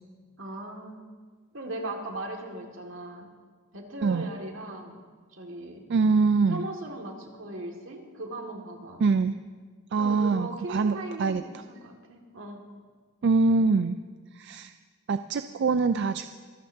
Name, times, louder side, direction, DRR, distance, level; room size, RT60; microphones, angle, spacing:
voice 1, 0.4-1.1 1.5-3.3 3.7-5.0 5.3-5.8 6.5-9.0 10.0-12.6, right 1 dB, 85° right, 1 dB, 2.0 m, -38 dB
voice 2, 5.9-6.7 9.0-9.4 9.9-11.4 13.2-14.0 14.4-14.7 15.1-16.3, right 4 dB, 60° right, 10 dB, 0.4 m, -24 dB
24.0 x 13.0 x 2.7 m, 1.5 s
head